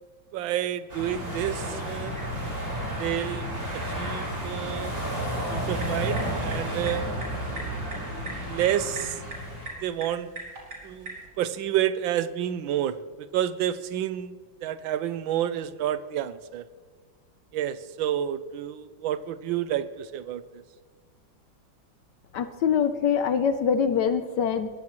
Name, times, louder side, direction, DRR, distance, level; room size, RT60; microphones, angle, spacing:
voice 1, 0.3-2.2 3.0-5.0 5.5-7.0 8.5-9.2 9.8-10.3 10.8-14.3 14.6-16.7 17.5-20.6, right 11 dB, 85° right, 13 dB, 1.5 m, -29 dB
sound 1, 0.9-9.7, right 1 dB, 30° right, 5.1 m, -32 dB
sound 2, 1.7-9.7, left 2 dB, 85° left, 2.5 m, -42 dB
sound 3, 5.6-11.3, right 2 dB, 50° right, 4.9 m, -42 dB
voice 2, 22.3-24.7, left 7 dB, 70° left, 10 dB, 1.3 m, -24 dB
22.0 x 15.5 x 3.1 m, 1.5 s
omnidirectional pair, 2.1 m